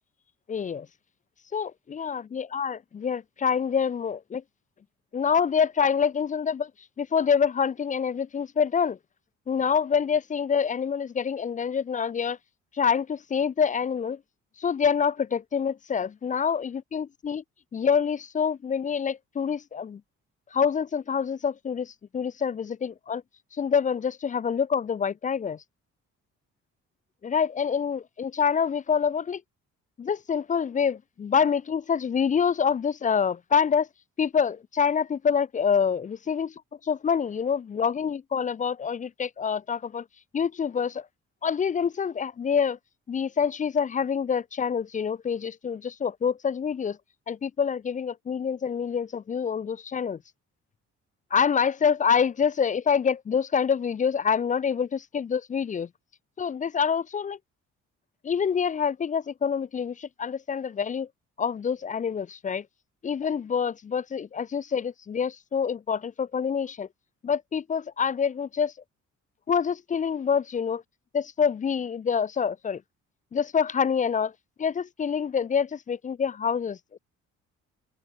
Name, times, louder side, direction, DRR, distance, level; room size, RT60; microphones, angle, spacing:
voice 1, 0.5-0.9 1.5-4.4 5.1-6.7 7.0-9.0 9.5-12.4 12.7-14.2 14.6-17.4 17.7-20.0 20.5-23.2 23.5-25.6 27.2-29.4 30.0-33.9 34.2-36.5 36.8-40.1 40.3-41.1 41.4-42.8 43.1-47.0 47.3-50.2 51.3-55.9 56.4-57.4 58.2-61.1 61.4-62.7 63.0-66.9 67.2-68.7 69.5-70.8 71.1-72.8 73.3-74.3 74.6-76.8, left 6 dB, 25° left, 0.4 m, -26 dB
cardioid pair, 90°, 30 cm